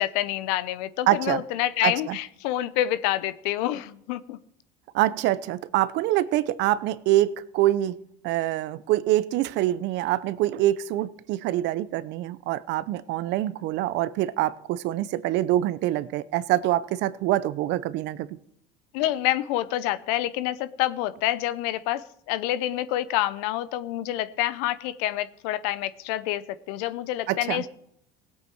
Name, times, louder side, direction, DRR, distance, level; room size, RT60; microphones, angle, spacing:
voice 1, 0.0-4.4 18.9-27.7, left 14 dB, 80° left, 16 dB, 0.7 m, -27 dB
voice 2, 1.1-1.4 1.8-2.2 4.9-7.9 8.2-18.4 27.3-27.6, right 14 dB, 65° right, 17 dB, 0.7 m, -25 dB
17.0 x 8.3 x 4.6 m, 0.73 s
supercardioid pair, 95°, 20 cm